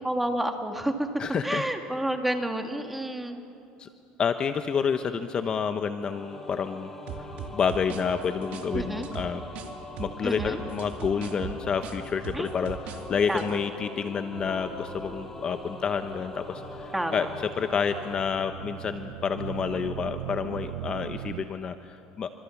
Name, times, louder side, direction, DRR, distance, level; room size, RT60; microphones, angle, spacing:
voice 1, 0.0-1.1 1.4-3.5 8.7-9.1 10.2-10.6 12.3-12.5 13.3-13.6 16.9-17.3, right 1 dB, 5° right, 5 dB, 2.0 m, -30 dB
voice 2, 1.2-1.6 3.8-3.9 4.2-6.9 7.2-9.4 10.0-17.3 17.6-22.3, left 6 dB, 30° left, 8 dB, 0.9 m, -29 dB
sound 1, 6.0-18.2, left 2 dB, 15° left, 2.4 m, -42 dB
sound 2, 7.1-9.7 10.0-13.0 13.3-13.5, right 9 dB, 55° right, 2.4 m, -38 dB
sound 3, 14.3-21.4, right 15 dB, 85° right, 0.6 m, -41 dB
28.5 x 26.0 x 7.2 m, 2.7 s
cardioid pair, 140°, 3 cm